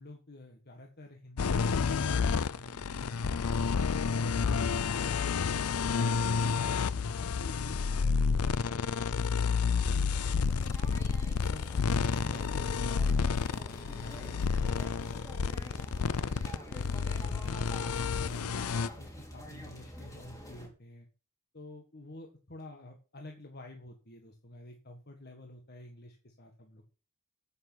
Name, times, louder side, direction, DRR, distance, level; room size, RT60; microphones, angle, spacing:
voice 1, 0.0-5.1 6.6-10.4 10.9-18.4 19.0-21.1 21.5-26.8, left 1 dB, 45° left, 3 dB, 1.7 m, -50 dB
sound 1, 1.4-18.9, left 5 dB, 75° left, 0.5 m, -30 dB
sound 2, 10.1-20.7, equal, 15° left, 3.1 m, -47 dB
9.5 x 8.5 x 6.2 m, 0.35 s
head